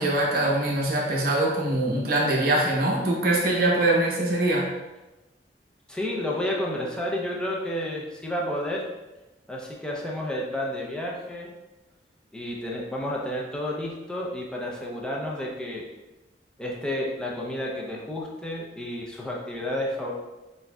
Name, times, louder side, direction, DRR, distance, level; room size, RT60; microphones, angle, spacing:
voice 1, 0.0-4.7, right 1 dB, 55° right, -3 dB, 0.9 m, -23 dB
voice 2, 5.9-8.8 9.5-11.5 12.3-15.9 16.6-20.1, left 1 dB, 5° left, -3 dB, 0.5 m, -31 dB
6.1 x 2.7 x 2.2 m, 1.1 s
head